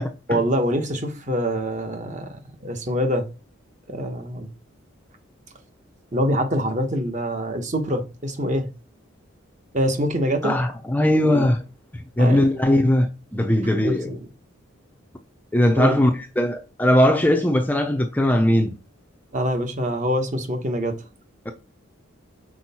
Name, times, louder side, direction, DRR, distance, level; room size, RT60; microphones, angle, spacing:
voice 1, 0.3-3.3 3.9-4.5 6.1-8.7 9.7-10.6 11.2-11.5 12.2-12.5 13.8-14.3 15.8-16.0 19.3-21.0, equal, 35° right, 1.1 m, -25 dB
voice 2, 10.4-11.6 11.9-14.1 15.5-18.7 21.5-21.6, left 1 dB, 10° left, 0.5 m, -19 dB
6.1 x 4.5 x 4.2 m
head